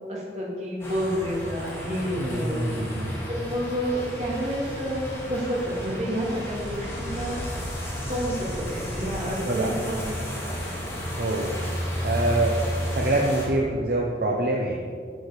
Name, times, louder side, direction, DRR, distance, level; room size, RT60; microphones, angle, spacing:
voice 1, 0.1-2.6 3.3-7.4 8.1-11.0, equal, 40° right, -4 dB, 2.6 m, -30 dB
sound 1, 0.8-13.5, equal, 15° left, 2.4 m, -32 dB
voice 2, 2.2-3.2 9.5-9.7 11.2-11.6 12.0-12.6 12.9-14.9, right 1 dB, 55° right, -1 dB, 0.9 m, -25 dB
sound 2, 6.7-10.8, left 1 dB, 75° left, 0.8 m, -40 dB
9.2 x 6.2 x 6.8 m, 2.2 s
head